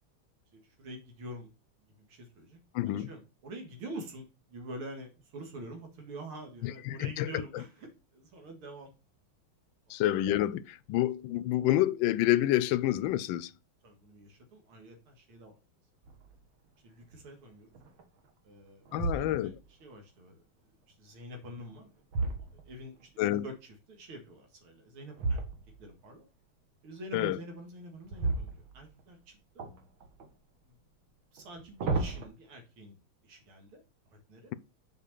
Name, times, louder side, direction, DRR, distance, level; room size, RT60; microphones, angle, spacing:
voice 1, 0.5-1.5 2.0-2.6 2.8-8.9 9.9-10.0 13.8-15.6 16.8-17.7 18.4-18.9 19.1-19.5 19.8-20.4 20.9-21.9 22.4-23.1 23.4-23.5 23.9-25.4 25.8-26.3 26.8-29.7 30.7-30.8 31.3-33.0 33.2-33.8 34.3-34.5, right 1 dB, 85° right, 2.8 m, -46 dB
voice 2, 2.7-3.1 6.6-7.6 9.9-13.5 18.9-19.6 23.2-23.5 27.1-27.4, left 14 dB, 75° left, 1.2 m, -28 dB
sound 1, 16.0-16.5 17.0-17.1 17.7-18.3 18.9-19.8 21.4-23.1 25.1-26.0 28.0-29.2 29.6-30.3 31.4-32.3, right 3 dB, 70° right, 2.2 m, -35 dB
7.0 x 5.2 x 6.7 m
omnidirectional pair, 2.3 m